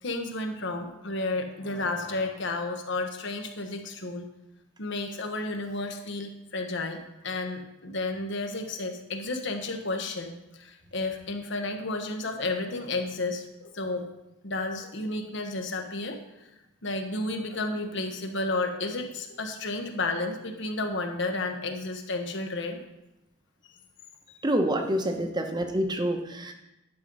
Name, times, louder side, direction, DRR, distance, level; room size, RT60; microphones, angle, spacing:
voice 1, 0.0-4.3 4.8-14.0 14.4-16.5 16.8-22.8 24.3-24.4 25.1-25.3, left 2 dB, 65° left, 5 dB, 1.2 m, -32 dB
voice 2, 24.4-26.5, right 1 dB, 20° right, 5 dB, 0.9 m, -27 dB
10.5 x 5.4 x 5.4 m, 0.91 s
head